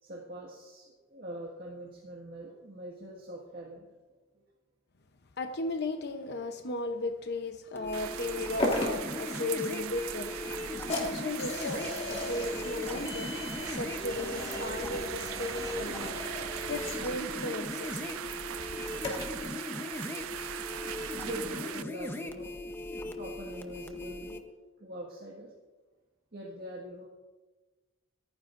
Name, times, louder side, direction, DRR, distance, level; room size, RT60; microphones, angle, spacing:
voice 1, 0.0-3.9 21.2-22.5 23.2-24.4 24.8-25.5 26.3-27.1, right 1 dB, 50° right, -3 dB, 1.8 m, -43 dB
voice 2, 5.4-18.0 18.6-18.8, left 2 dB, 55° left, 7 dB, 0.8 m, -36 dB
sound 1, 7.8-24.4, left 2 dB, 10° left, 0.8 m, -39 dB
sound 2, 7.9-21.8, right 12 dB, 80° right, 0.3 m, -40 dB
sound 3, 8.6-19.5, left 1 dB, 30° left, 2.5 m, -38 dB
25.5 x 9.6 x 2.6 m, 1.3 s
head